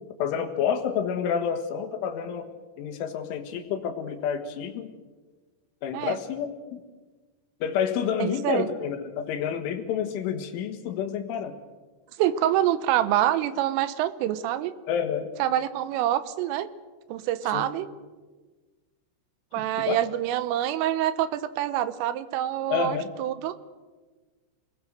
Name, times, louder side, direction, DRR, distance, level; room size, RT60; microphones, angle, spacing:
voice 1, 0.2-2.5 2.8-4.9 5.8-6.8 7.6-11.6 14.9-15.3 17.5-17.6 19.6-20.0 22.7-23.1, left 8 dB, 75° left, 7 dB, 3.9 m, -29 dB
voice 2, 8.2-8.7 12.2-14.7 15.4-16.7 17.1-17.9 19.5-23.6, right 12 dB, 80° right, 13 dB, 3.5 m, -26 dB
28.0 x 20.5 x 6.6 m, 1.3 s
omnidirectional pair, 5.9 m